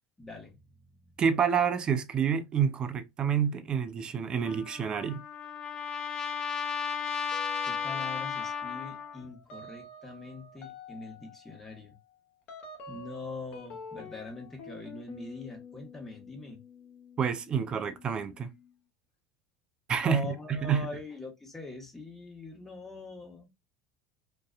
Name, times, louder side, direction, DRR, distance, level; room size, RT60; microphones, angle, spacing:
voice 1, 0.2-1.1 7.7-11.9 12.9-16.6 20.0-23.5, left 3 dB, 10° left, 1.1 m, -43 dB
voice 2, 1.2-5.2 17.2-18.5 19.9-20.9, right 7 dB, 35° right, 0.5 m, -28 dB
Trumpet, 4.4-9.3, left 7 dB, 30° left, 0.5 m, -34 dB
sound 1, 7.3-8.1 8.4-18.7, left 3 dB, 55° left, 0.8 m, -49 dB
2.6 x 2.3 x 2.3 m
hypercardioid pair, 80°, 2 cm